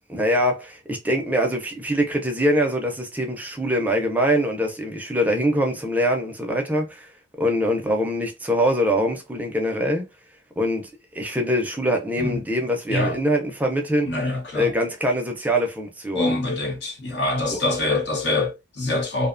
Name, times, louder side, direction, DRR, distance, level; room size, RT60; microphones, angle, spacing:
voice 1, 0.1-7.1 7.4-10.0 10.6-10.8 11.1-14.1 14.5-16.4 17.5-17.6, equal, 10° right, 0.4 m, -23 dB
voice 2, 14.0-14.7 16.1-19.3, left 2 dB, 85° left, 0.8 m, -25 dB
2.6 x 2.1 x 2.4 m
head